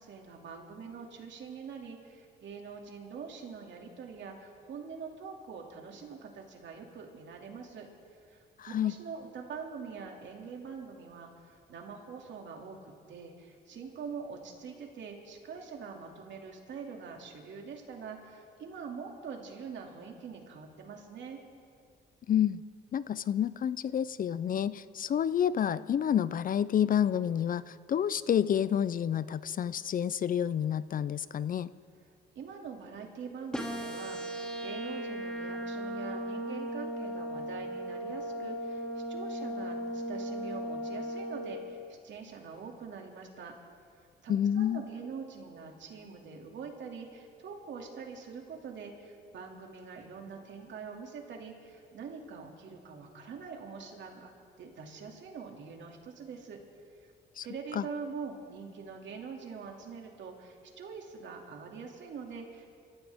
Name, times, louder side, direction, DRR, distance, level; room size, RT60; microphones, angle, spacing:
voice 1, 0.0-7.9 8.2-21.4 32.3-43.5 44.2-54.3 54.6-56.6 57.0-57.1 57.4-62.7, right 5 dB, 65° right, 1 dB, 2.5 m, -44 dB
voice 2, 8.6-8.9 22.3-22.6 22.9-31.7 44.3-44.8 57.4-57.5 57.7-57.9, left 9 dB, 45° left, 17 dB, 0.4 m, -29 dB
sound 1, 33.5-41.5, equal, 5° left, 2.5 m, -37 dB
26.5 x 14.5 x 3.6 m, 2.3 s
cardioid pair, 90°, 20 cm